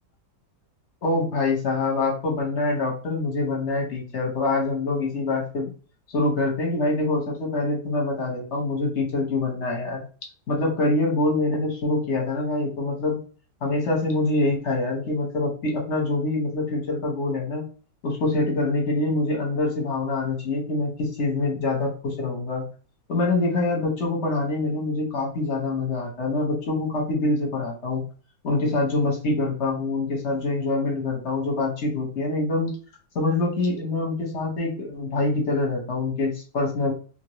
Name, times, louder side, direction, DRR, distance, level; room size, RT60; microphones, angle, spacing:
voice 1, 1.0-5.7 6.1-10.0 10.5-13.2 13.6-17.6 18.0-22.6 23.1-28.0 28.4-32.7 33.1-36.9, left 2 dB, 50° left, 0 dB, 1.1 m, -25 dB
2.9 x 2.6 x 3.0 m, 0.38 s
omnidirectional pair, 1.8 m